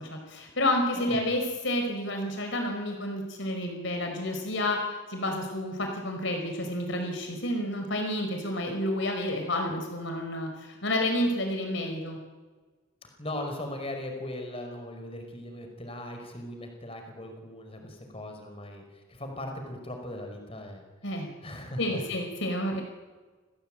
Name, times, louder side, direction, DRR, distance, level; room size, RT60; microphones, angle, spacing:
voice 1, 0.0-4.8 5.1-12.2 21.0-21.3 21.8-22.8, left 1 dB, 60° left, 4 dB, 5.1 m, -30 dB
voice 2, 13.0-20.8 21.4-22.0, left 1 dB, 25° left, 4 dB, 5.2 m, -39 dB
29.5 x 19.5 x 9.1 m, 1.3 s
head